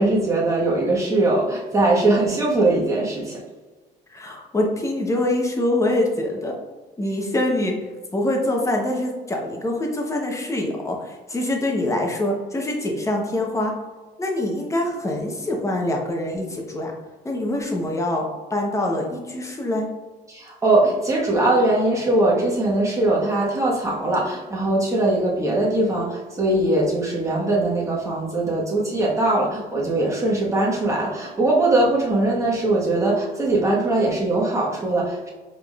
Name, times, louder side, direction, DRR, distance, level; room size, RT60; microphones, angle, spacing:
voice 1, 0.0-3.4 20.3-35.3, right 2 dB, 20° right, -4 dB, 1.3 m, -21 dB
voice 2, 4.1-6.6 7.0-7.8 8.1-13.7 14.2-16.9 17.2-19.9, left 1 dB, 20° left, 1 dB, 0.9 m, -24 dB
4.9 x 3.6 x 2.4 m, 1.3 s
cardioid pair, 110°, 17 cm